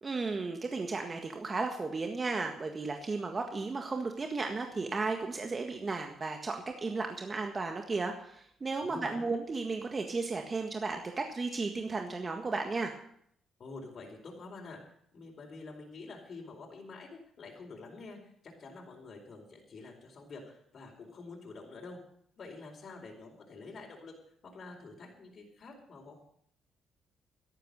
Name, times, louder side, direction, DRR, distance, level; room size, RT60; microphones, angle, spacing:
voice 1, 0.0-12.9, right 3 dB, 30° right, 4 dB, 1.7 m, -34 dB
voice 2, 8.8-9.2 13.6-14.8 15.1-22.0 22.4-24.1 24.4-26.1, left 3 dB, 50° left, 0 dB, 4.5 m, -47 dB
13.5 x 11.5 x 6.7 m, 0.67 s
cardioid pair, 90°, 0 cm